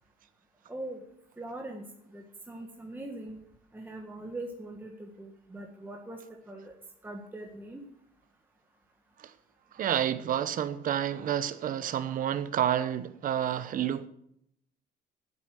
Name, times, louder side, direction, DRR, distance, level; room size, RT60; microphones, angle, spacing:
voice 1, 0.7-1.0 1.4-1.9 2.1-3.4 3.7-6.2 6.5-6.7 7.0-7.8, right 2 dB, 10° right, 1.6 m, -41 dB
voice 2, 9.7-14.1, right 10 dB, 55° right, 0.9 m, -29 dB
9.5 x 8.2 x 7.7 m
cardioid pair, 110°, 17 cm